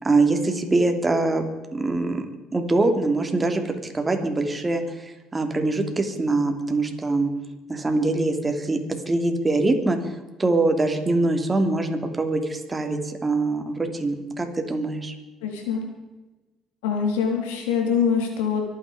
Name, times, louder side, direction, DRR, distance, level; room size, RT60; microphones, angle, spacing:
voice 1, 0.0-7.3 7.7-8.8 9.1-15.1, right 2 dB, 20° right, 5 dB, 3.1 m, -23 dB
voice 2, 15.4-15.8 16.8-18.6, left 6 dB, 85° left, 3 dB, 3.5 m, -24 dB
25.0 x 9.5 x 5.2 m, 1.1 s
hypercardioid pair, 65°, 0 cm